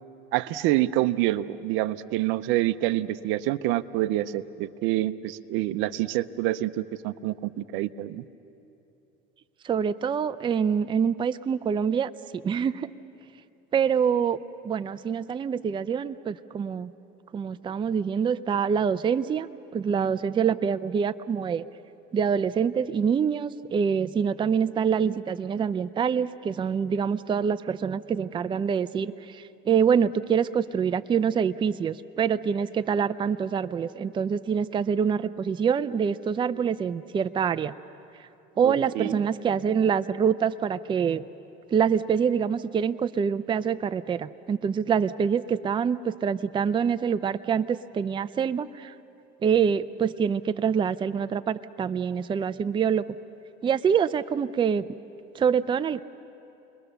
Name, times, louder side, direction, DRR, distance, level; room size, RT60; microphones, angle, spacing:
voice 1, 0.3-8.2 38.6-39.2, right 15 dB, 70° right, 15 dB, 0.7 m, -27 dB
voice 2, 9.6-12.1 12.4-12.9 13.7-16.9 17.3-19.5 19.7-21.7 22.1-37.7 38.6-41.2 41.7-48.9 49.4-53.2 53.6-54.8 55.3-56.0, right 7 dB, 25° right, 12 dB, 0.5 m, -25 dB
29.5 x 21.5 x 6.9 m, 2.8 s
supercardioid pair, 115°, 21 cm